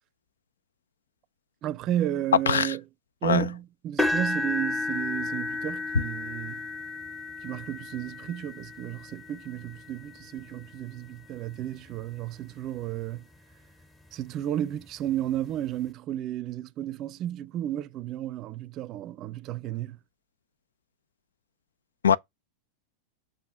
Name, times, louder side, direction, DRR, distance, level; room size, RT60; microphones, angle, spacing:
voice 1, 1.6-2.8 3.2-6.6 7.4-13.2 14.1-20.0, right 12 dB, 40° right, 0.5 m, -33 dB
voice 2, 2.5-2.7 3.2-3.5 22.0-22.2, left 7 dB, 85° left, 0.3 m, -22 dB
sound 1, 4.0-12.0 12.6-12.9 13.3-13.4 14.8-14.9, left 2 dB, ahead, 0.7 m, -33 dB
7.3 x 2.7 x 5.5 m
hypercardioid pair, 100°, 0 cm